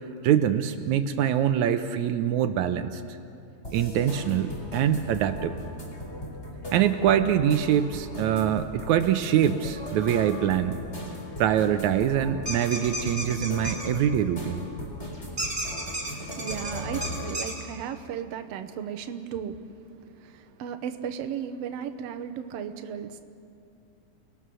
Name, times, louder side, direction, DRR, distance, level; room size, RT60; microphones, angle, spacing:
voice 1, 0.2-3.0 3.7-5.6 6.7-10.8 11.4-14.7, right 10 dB, 80° right, 9 dB, 2.1 m, -24 dB
sound 1, 3.6-17.4, left 1 dB, 20° left, 3.9 m, -38 dB
sound 2, 12.4-13.9 15.4-17.5, right 1 dB, 15° right, 3.6 m, -32 dB
voice 2, 15.7-19.6 19.9-23.2, right 8 dB, 65° right, 8 dB, 1.9 m, -36 dB
29.0 x 19.5 x 6.3 m, 2.6 s
omnidirectional pair, 3.4 m